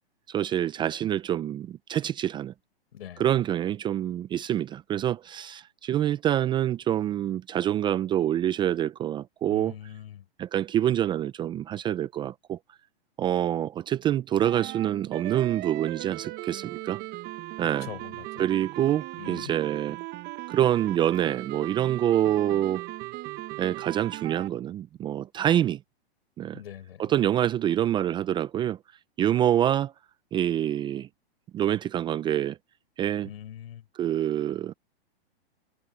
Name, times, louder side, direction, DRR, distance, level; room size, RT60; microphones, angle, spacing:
voice 1, 0.3-2.5 3.2-9.7 10.4-12.6 13.2-17.0 17.6-17.9 18.4-20.0 20.5-22.8 23.6-25.8 26.4-26.6 27.0-28.8 29.2-29.9 30.3-31.1 31.5-32.6 33.0-33.3 34.0-34.7, right 11 dB, 15° right, 0.5 m, -26 dB
voice 2, 2.9-3.4 9.5-10.3 17.6-18.5 19.2-19.5 26.5-27.1 33.2-33.9, left 10 dB, 75° left, 6.4 m, -43 dB
sound 1, 14.4-24.5, right 20 dB, 30° right, 1.2 m, -38 dB
hypercardioid pair, 135°, 31 cm